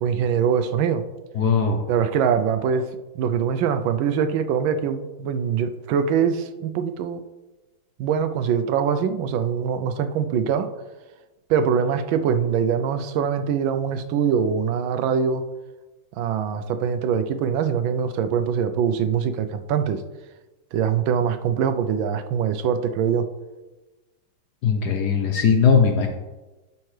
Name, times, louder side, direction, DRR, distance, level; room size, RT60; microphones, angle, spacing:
voice 1, 0.0-1.0 1.9-7.2 8.0-10.7 11.5-15.4 16.1-20.0 20.7-23.3, right 7 dB, 80° right, 9 dB, 1.3 m, -23 dB
voice 2, 1.3-1.9 24.6-26.1, left 6 dB, 65° left, 5 dB, 1.1 m, -19 dB
12.0 x 5.6 x 3.2 m, 1.1 s
omnidirectional pair, 2.3 m